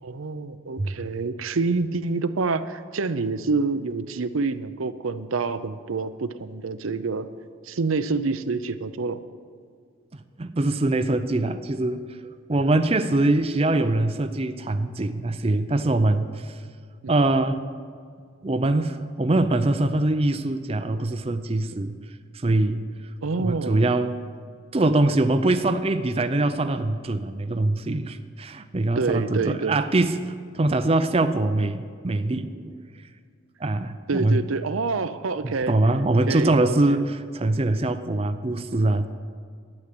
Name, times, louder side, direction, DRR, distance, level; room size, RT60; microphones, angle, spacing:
voice 1, 0.0-7.3 7.6-9.2 13.7-13.9 17.0-17.1 23.2-23.9 29.0-29.8 34.1-35.7 36.3-37.0, right 4 dB, 80° right, 11 dB, 0.6 m, -27 dB
voice 2, 10.4-16.6 17.1-17.6 18.4-22.0 22.3-22.8 23.4-24.2 24.7-33.1 33.6-34.4 35.4-39.1, right 2 dB, 30° right, 9 dB, 0.5 m, -23 dB
12.0 x 9.5 x 7.7 m, 2.1 s
head